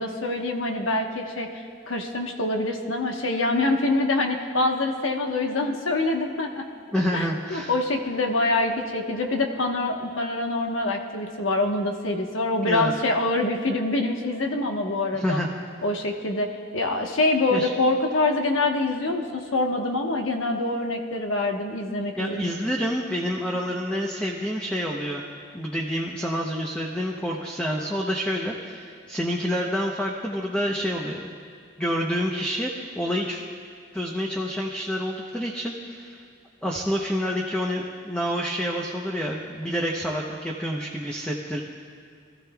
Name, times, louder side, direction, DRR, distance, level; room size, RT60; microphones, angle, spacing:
voice 1, 0.0-6.7 7.1-15.4 15.8-16.5 16.7-22.5, left 2 dB, 75° left, 2 dB, 1.2 m, -25 dB
voice 2, 6.9-7.7 12.6-12.9 15.1-15.5 17.5-17.7 22.2-25.3 25.5-31.3 31.8-33.4 33.9-36.3 36.6-41.6, equal, 5° left, -2 dB, 0.8 m, -28 dB
25.0 x 14.0 x 2.3 m, 2.3 s
head